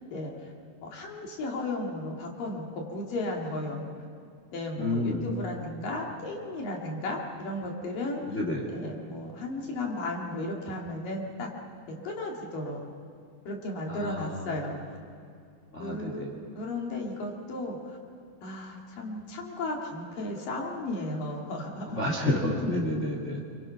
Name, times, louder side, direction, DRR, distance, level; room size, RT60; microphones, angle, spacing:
voice 1, 0.8-3.9 4.5-8.4 8.7-11.5 11.9-12.8 13.5-14.8 15.8-16.2 16.5-18.0 18.4-22.0, left 2 dB, 80° left, -1 dB, 4.5 m, -34 dB
voice 2, 4.8-5.3 8.3-8.7 13.9-14.5 15.7-16.5 21.9-23.4, left 1 dB, 25° left, -1 dB, 2.4 m, -30 dB
28.0 x 24.5 x 5.9 m, 2.4 s
omnidirectional pair, 3.8 m